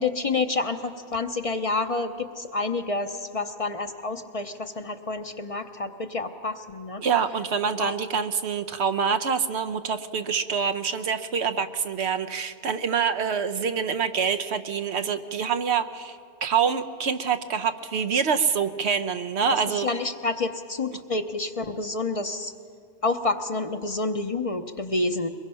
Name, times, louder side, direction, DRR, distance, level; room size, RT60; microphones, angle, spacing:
voice 1, 0.0-7.0 7.8-7.9 19.5-22.5 23.0-25.3, left 3 dB, 35° left, 8 dB, 0.7 m, -29 dB
voice 2, 7.0-16.2 16.4-19.9, right 6 dB, 80° right, 9 dB, 1.1 m, -26 dB
22.5 x 21.5 x 5.7 m, 2.3 s
omnidirectional pair, 1.1 m